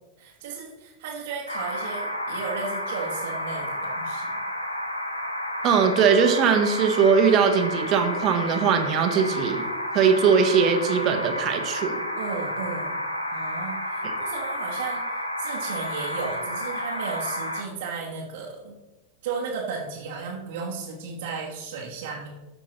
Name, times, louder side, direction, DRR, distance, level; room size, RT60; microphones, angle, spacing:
voice 1, 0.2-4.4 12.2-13.0 13.3-18.8 19.2-22.3, right 5 dB, 55° right, -4 dB, 1.2 m, -34 dB
sound 1, 1.5-17.6, left 1 dB, 85° left, 0.8 m, -31 dB
voice 2, 5.6-9.6 9.9-12.0 14.0-14.1, right 6 dB, 35° right, 5 dB, 1.0 m, -20 dB
13.0 x 5.2 x 3.0 m, 1.1 s
figure-of-eight pair, 90°, 0 cm